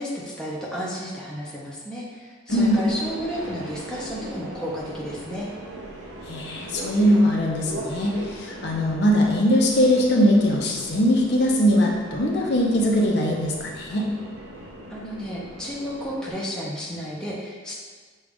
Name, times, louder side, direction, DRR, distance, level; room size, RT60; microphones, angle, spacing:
voice 1, 0.0-5.5 14.9-17.7, equal, 5° left, -6 dB, 0.5 m, -32 dB
voice 2, 2.5-2.8 6.3-14.1, equal, 55° left, -1 dB, 0.6 m, -21 dB
Subway metro underground, 2.5-16.3, right 1 dB, 80° right, 0.6 m, -39 dB
6.3 x 2.3 x 3.5 m, 1.5 s
head